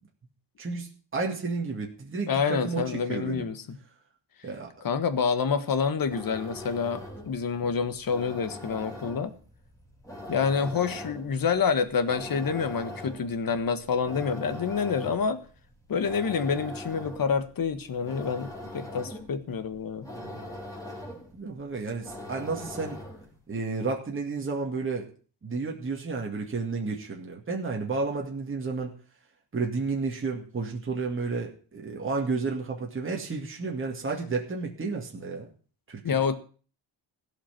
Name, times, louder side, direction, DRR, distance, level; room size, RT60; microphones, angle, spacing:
voice 1, 0.6-3.5 4.4-4.7 20.1-20.5 21.3-23.0 23.5-25.1 25.4-28.9 29.5-35.5 35.9-36.0, right 4 dB, 25° right, 0 dB, 2.3 m, -32 dB
voice 2, 2.3-3.8 4.8-9.3 10.3-15.4 15.9-20.1 36.0-36.4, left 6 dB, 45° left, 12 dB, 1.5 m, -28 dB
sound 1, 6.0-23.4, left 1 dB, 5° left, 3.7 m, -42 dB
16.0 x 5.9 x 9.1 m, 0.40 s
wide cardioid pair, 145°, 46 cm